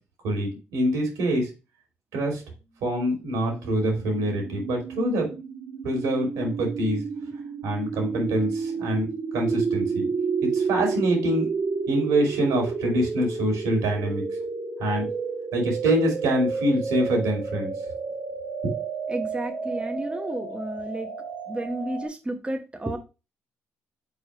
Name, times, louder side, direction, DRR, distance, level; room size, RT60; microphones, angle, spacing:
voice 1, 0.2-1.5 2.1-2.4 2.8-5.3 5.8-7.0 7.6-9.1 9.3-10.1 10.5-11.5 11.9-14.2 14.8-15.1 15.5-17.7 18.6-18.7, right 1 dB, 80° right, 1 dB, 2.9 m, -25 dB
sound 1, 3.2-22.1, right 5 dB, 60° right, 1.8 m, -31 dB
voice 2, 19.1-21.1 21.5-23.0, right 1 dB, 20° right, 3 dB, 1.1 m, -32 dB
4.9 x 4.3 x 4.8 m, 0.29 s
supercardioid pair, 55°, 6 cm